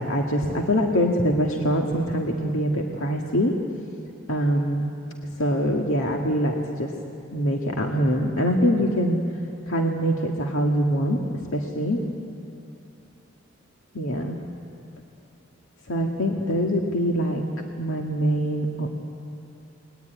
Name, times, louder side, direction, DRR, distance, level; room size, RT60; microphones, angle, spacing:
voice 1, 0.0-3.5 4.3-4.9 5.4-6.9 7.3-9.2 9.7-12.0 13.9-14.4 15.9-17.4 17.8-18.9, equal, 90° left, 1 dB, 1.9 m, -24 dB
30.0 x 21.0 x 9.4 m, 2.7 s
head